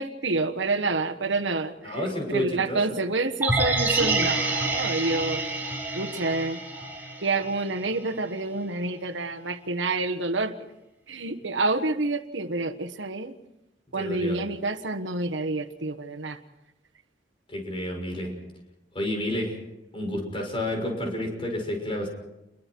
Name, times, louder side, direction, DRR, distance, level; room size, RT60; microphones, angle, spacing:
voice 1, 0.0-2.0 2.3-5.4 5.9-6.6 7.2-10.5 11.1-13.3 13.9-16.4, right 3 dB, 90° right, 7 dB, 1.4 m, -28 dB
voice 2, 1.8-3.0 13.9-14.4 17.5-18.3 18.9-19.6 19.9-22.1, left 1 dB, 30° left, 2 dB, 6.3 m, -30 dB
sound 1, 3.4-7.6 7.9-8.0, right 2 dB, 10° right, 6.7 m, -27 dB
29.0 x 23.0 x 4.6 m, 0.91 s
head